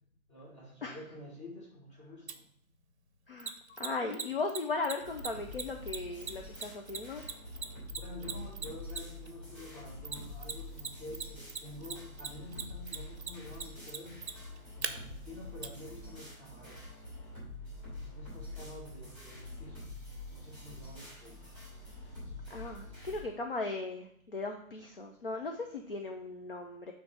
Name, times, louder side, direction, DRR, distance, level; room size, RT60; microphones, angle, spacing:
voice 1, 0.3-2.4 7.9-14.2 14.8-17.0 18.0-20.0 20.3-21.4, left 1 dB, 20° left, -4 dB, 1.4 m, -48 dB
Mechanisms, 2.3-2.4 3.4-9.3 10.0-10.9 11.1-14.9 15.6-15.7, right 6 dB, 50° right, 0.6 m, -38 dB
voice 2, 3.3-7.2 22.5-26.9, left 3 dB, 40° left, 3 dB, 0.5 m, -37 dB
sound 1, 5.0-23.2, left 2 dB, 5° left, 2.8 m, -46 dB
8.0 x 3.2 x 4.7 m, 0.69 s
hypercardioid pair, 165°, 43 cm